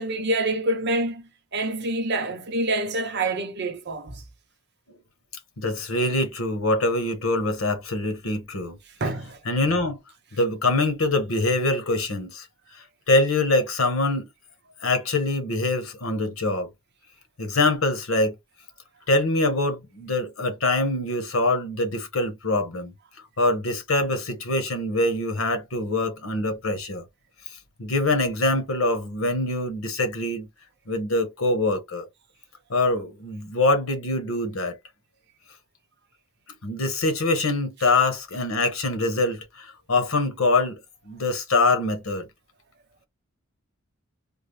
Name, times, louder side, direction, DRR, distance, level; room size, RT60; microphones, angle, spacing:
voice 1, 0.0-4.2 9.0-9.4, right 2 dB, 55° right, 0.9 m, -27 dB
voice 2, 5.6-8.8 9.5-10.0 10.3-12.5 12.7-14.3 14.8-16.7 17.4-18.4 19.1-22.9 23.4-27.1 27.8-30.5 30.9-32.1 32.7-34.8 36.6-40.8 41.0-42.3, left 2 dB, 85° left, 1.2 m, -24 dB
3.6 x 2.1 x 3.3 m
head